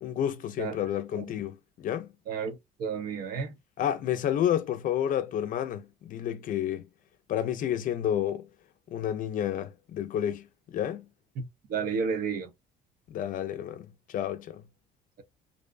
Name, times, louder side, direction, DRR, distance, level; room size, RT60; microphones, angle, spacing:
voice 1, 0.0-2.1 3.8-6.9 7.3-8.5 8.9-11.1 13.1-14.6, left 10 dB, 50° left, 0.4 m, -30 dB
voice 2, 2.3-3.6 11.4-12.5, right 6 dB, 60° right, 0.6 m, -32 dB
2.6 x 2.0 x 2.4 m
cardioid pair, 110°, 17 cm